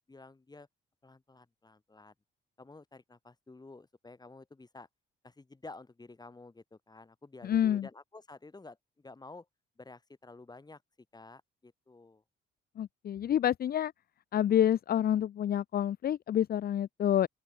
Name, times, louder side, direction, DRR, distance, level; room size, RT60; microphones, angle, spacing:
voice 1, 0.1-0.7 1.0-2.1 2.6-4.9 5.2-9.5 9.8-10.8 11.1-12.2, left 3 dB, 20° left, 4.3 m, -51 dB
voice 2, 7.4-7.9 12.8-13.9 14.3-17.3, left 10 dB, 50° left, 0.6 m, -28 dB
open air
cardioid pair, 90°, 20 cm